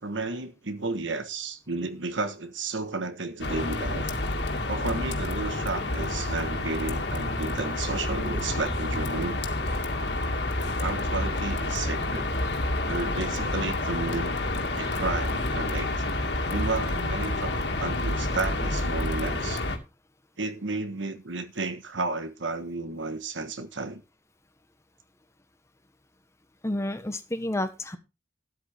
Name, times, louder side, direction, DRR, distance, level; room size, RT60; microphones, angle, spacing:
voice 1, 0.0-4.1 4.7-9.4 10.8-12.3 12.9-14.4 14.7-15.9 16.5-19.6 20.4-24.0, right 3 dB, 85° right, 1.3 m, -32 dB
sound 1, 3.4-19.8, left 2 dB, 65° left, 2.3 m, -29 dB
voice 2, 26.6-28.0, left 1 dB, 15° left, 1.1 m, -30 dB
13.0 x 9.6 x 3.5 m
head